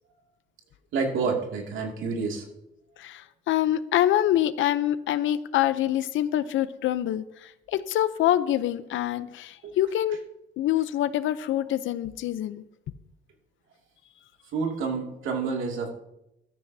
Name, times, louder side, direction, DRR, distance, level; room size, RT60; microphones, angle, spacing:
voice 1, 0.9-2.4 9.6-9.7 14.5-15.9, right 5 dB, 85° right, 1 dB, 2.5 m, -28 dB
voice 2, 3.0-10.2 10.6-12.6, left 12 dB, 80° left, 14 dB, 0.7 m, -25 dB
13.5 x 13.5 x 2.8 m, 0.84 s
cardioid pair, 90°, 20 cm